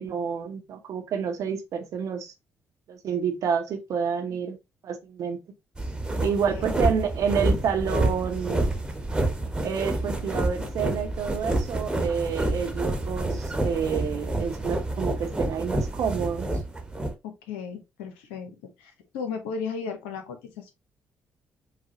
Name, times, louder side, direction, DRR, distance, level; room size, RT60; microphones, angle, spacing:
voice 1, 0.0-2.3 2.9-4.6 4.8-5.4 6.2-8.6 9.6-16.5, right 6 dB, 60° right, 0.8 m, -29 dB
sound 1, 5.8-17.1, right 2 dB, 15° right, 1.2 m, -28 dB
voice 2, 6.2-6.7 17.2-20.7, left 6 dB, 80° left, 0.8 m, -36 dB
4.9 x 2.3 x 2.8 m
hypercardioid pair, 45°, 6 cm